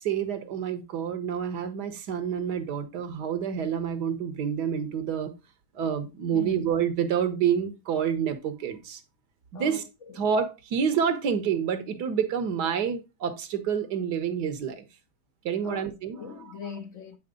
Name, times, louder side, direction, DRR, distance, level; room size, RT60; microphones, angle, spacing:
voice 1, 0.0-5.3 5.7-9.0 9.5-9.8 10.2-14.8 15.4-16.2, right 8 dB, 75° right, 1.5 m, -28 dB
voice 2, 9.5-10.2 15.6-15.8 16.1-17.2, left 6 dB, 60° left, 0.9 m, -40 dB
8.6 x 4.3 x 3.7 m
omnidirectional pair, 1.8 m